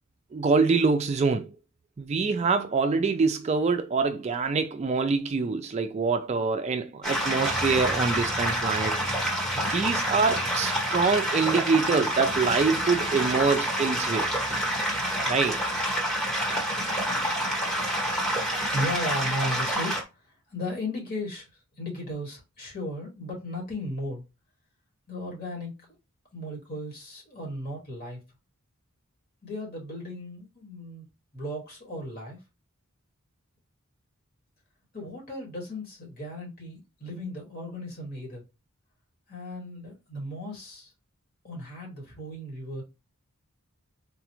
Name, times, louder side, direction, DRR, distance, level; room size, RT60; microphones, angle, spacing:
voice 1, 0.3-1.5 2.0-9.0 9.2-14.3 15.3-15.6, right 4 dB, 30° right, 0.3 m, -25 dB
sound 1, 7.0-20.0, equal, 5° left, 1.1 m, -28 dB
voice 2, 18.6-24.2 25.1-25.9 26.3-28.2 29.4-31.1 31.3-32.4 34.9-38.4 39.3-40.9 41.4-42.8, left 1 dB, 45° left, 1.8 m, -36 dB
4.0 x 2.4 x 2.9 m
head